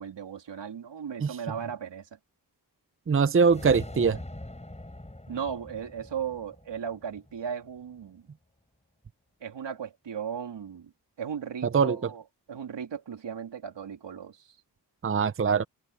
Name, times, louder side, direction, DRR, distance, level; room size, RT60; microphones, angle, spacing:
voice 1, 0.0-2.2 5.3-8.3 9.4-10.9 11.2-14.6, right 7 dB, 85° right, 3.1 m, -36 dB
voice 2, 3.1-4.2 11.7-12.0 15.0-15.6, right 5 dB, 30° right, 0.7 m, -22 dB
sound 1, 3.4-7.8, left 1 dB, 15° left, 7.5 m, -43 dB
cardioid pair, 75°, 42 cm